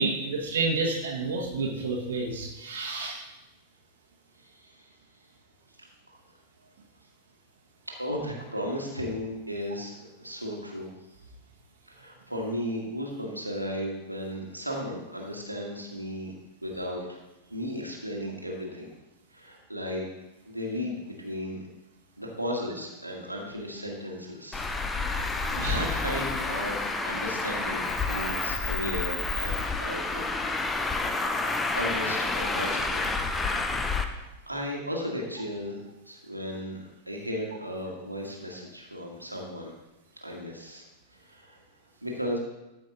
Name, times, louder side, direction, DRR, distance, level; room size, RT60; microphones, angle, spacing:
voice 1, 0.0-3.2 25.5-25.8, right 3 dB, 65° right, -1 dB, 1.3 m, -29 dB
voice 2, 4.4-4.9 6.1-6.2 7.9-10.9 11.8-16.3 16.6-17.2 17.5-18.9 19.3-20.1 20.4-21.6 22.2-24.6 24.9-30.3 31.7-33.1 33.8-35.8 36.0-39.7 40.2-40.8 41.1-41.6 42.0-42.4, equal, 85° right, -1 dB, 1.7 m, -35 dB
Traffic noise roadway noise, 24.5-34.0, left 3 dB, 15° left, 0.7 m, -29 dB
13.0 x 5.3 x 3.9 m, 1.0 s
figure-of-eight pair, 90°, 0 cm